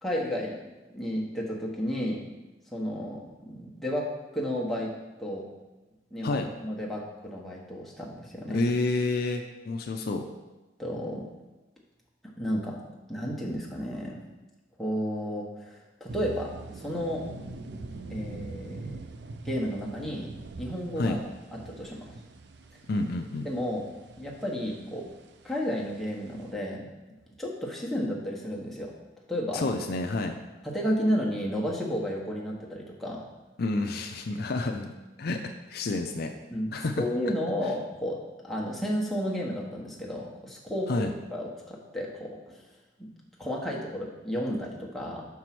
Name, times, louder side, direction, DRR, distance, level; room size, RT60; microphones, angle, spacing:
voice 1, 0.0-2.2 2.7-5.5 6.1-8.6 10.8-11.3 12.4-12.8 13.1-14.2 14.8-17.2 18.1-19.0 19.4-21.2 21.5-22.1 23.4-23.9 24.1-25.1 25.4-26.9 27.4-28.9 29.3-29.6 30.6-33.2 36.5-38.2 38.4-42.6 43.0-43.1 43.4-45.3, equal, ahead, -4 dB, 1.1 m, -32 dB
voice 2, 8.5-10.3 21.0-21.2 22.9-23.5 29.5-30.4 33.6-34.9 35.2-35.4 35.7-36.3 36.7-37.0 40.9-41.1, left 2 dB, 55° left, 4 dB, 0.5 m, -29 dB
sound 1, 16.1-26.5, right 3 dB, 60° right, 0.5 m, -43 dB
6.0 x 4.7 x 5.9 m, 1.1 s
head